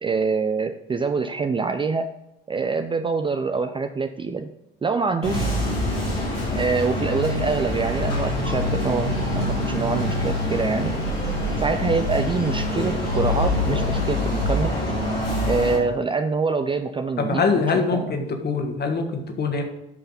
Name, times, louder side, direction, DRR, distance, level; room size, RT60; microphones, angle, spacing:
voice 1, 0.0-2.1 2.5-4.5 4.8-5.5 6.5-10.9 11.6-14.7 15.5-18.1, right 4 dB, 15° right, 8 dB, 0.5 m, -25 dB
sound 1, 5.2-15.8, left 1 dB, 80° left, 3.8 m, -25 dB
voice 2, 17.2-19.6, left 4 dB, 35° left, 4 dB, 1.8 m, -23 dB
12.0 x 5.6 x 4.0 m, 0.88 s
figure-of-eight pair, 55°, 30 cm